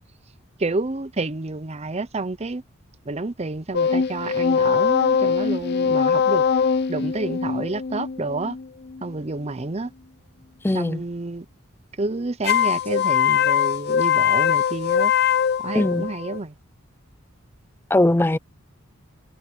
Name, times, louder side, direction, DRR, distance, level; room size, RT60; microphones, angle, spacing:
voice 1, 0.6-2.6 3.1-6.4 6.9-8.6 9.0-9.9 10.7-11.5 12.0-15.1 15.6-16.5, right 2 dB, 30° right, 0.7 m, -29 dB
sound 1, 3.7-9.1 12.4-16.4, left 7 dB, 50° left, 0.7 m, -22 dB
voice 2, 10.6-11.0 15.7-16.1 17.9-18.4, left 1 dB, 10° left, 0.4 m, -20 dB
head